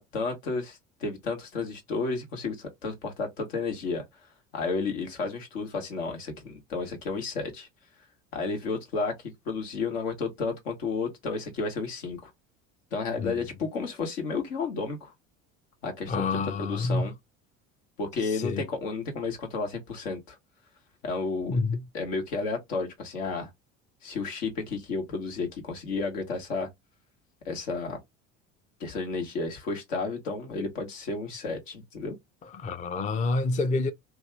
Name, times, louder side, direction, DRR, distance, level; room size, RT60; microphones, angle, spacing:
voice 1, 0.0-4.0 4.5-7.7 8.3-12.3 12.9-15.1 15.8-17.1 18.0-20.3 21.0-21.6 21.9-23.5 24.0-26.7 27.4-28.0 28.8-32.2, left 4 dB, 80° left, 1.3 m, -32 dB
voice 2, 16.1-17.1 18.4-18.6 21.5-21.8 32.6-33.9, left 3 dB, 20° left, 0.5 m, -27 dB
2.9 x 2.3 x 3.1 m
hypercardioid pair, 70°, 39 cm